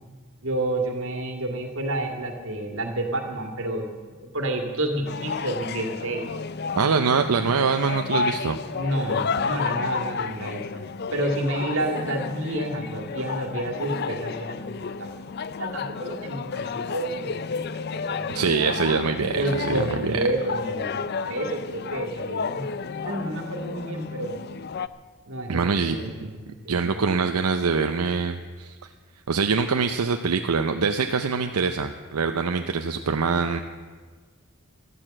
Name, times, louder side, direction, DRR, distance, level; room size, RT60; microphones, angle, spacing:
voice 1, 0.4-3.9 4.2-6.3 8.7-10.9 11.1-15.1 15.6-17.6 18.1-18.8 19.3-22.7 23.0-24.4 25.3-27.1, right 1 dB, 60° right, 4 dB, 2.1 m, -30 dB
sound 1, 5.1-24.9, left 5 dB, 45° left, 0.4 m, -31 dB
voice 2, 6.8-8.6 18.3-20.2 25.5-26.1 26.7-28.9 29.3-33.6, right 5 dB, 85° right, 6 dB, 0.6 m, -24 dB
13.0 x 12.0 x 7.7 m, 1.5 s
head